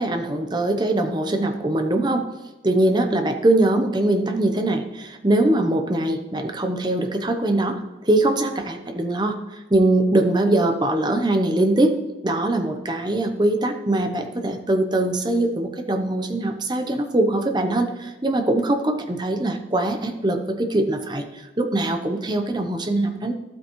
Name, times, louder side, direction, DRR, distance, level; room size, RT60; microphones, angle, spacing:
voice 1, 0.0-2.2 2.6-11.9 12.2-23.3, right 1 dB, 25° right, 6 dB, 0.8 m, -22 dB
12.0 x 8.2 x 3.1 m, 1.2 s
head